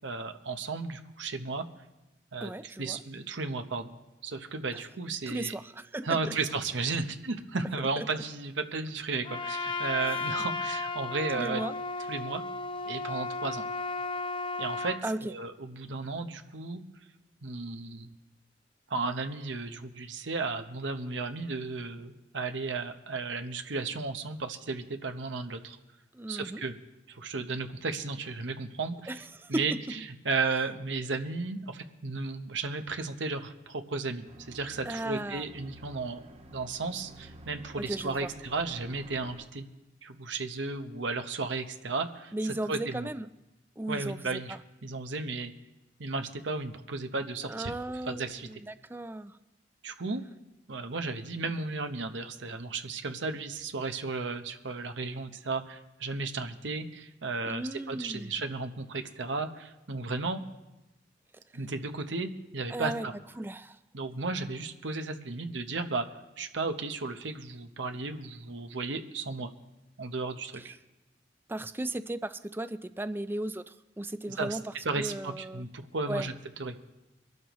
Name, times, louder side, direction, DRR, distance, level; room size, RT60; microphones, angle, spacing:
voice 1, 0.0-1.7 2.3-5.5 6.0-11.6 12.1-12.4 12.8-13.6 14.6-16.8 17.4-18.1 18.9-25.8 26.3-26.7 27.1-29.2 29.5-36.2 36.5-39.7 40.0-43.1 43.9-45.5 46.0-47.7 48.0-48.6 49.8-50.2 50.7-60.4 61.5-63.1 63.9-66.1 66.4-69.5 70.0-70.8 74.4-74.6 74.8-76.3 76.6-76.8, right 3 dB, 90° right, 7 dB, 1.0 m, -34 dB
voice 2, 2.4-3.0 5.3-6.4 8.0-8.1 11.3-11.7 15.0-15.3 26.1-26.6 29.1-29.8 34.9-35.4 37.8-38.3 42.3-43.3 43.8-44.6 47.5-49.4 57.5-58.3 62.7-63.1 63.4-63.8 71.5-74.6 75.0-75.7 76.1-76.3, right 1 dB, 10° right, 12 dB, 0.4 m, -36 dB
Trumpet, 9.2-15.0, left 3 dB, 30° left, 0.6 m, -34 dB
sound 1, 34.3-39.5, right 1 dB, 35° right, 0.9 m, -51 dB
23.5 x 12.0 x 3.1 m, 1.0 s
head